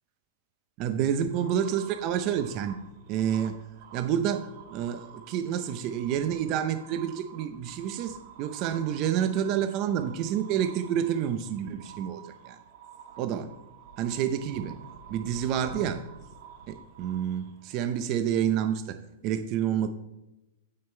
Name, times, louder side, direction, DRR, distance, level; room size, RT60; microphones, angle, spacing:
voice 1, 0.8-2.8 3.1-3.6 3.9-12.6 13.2-13.5 14.0-14.8 15.1-16.0 16.7-19.0 19.2-19.9, right 9 dB, 30° right, 9 dB, 0.5 m, -29 dB
sound 1, 1.3-18.4, right 7 dB, 50° right, 1.3 m, -49 dB
8.8 x 6.5 x 4.4 m, 0.96 s
supercardioid pair, 160°, 0 cm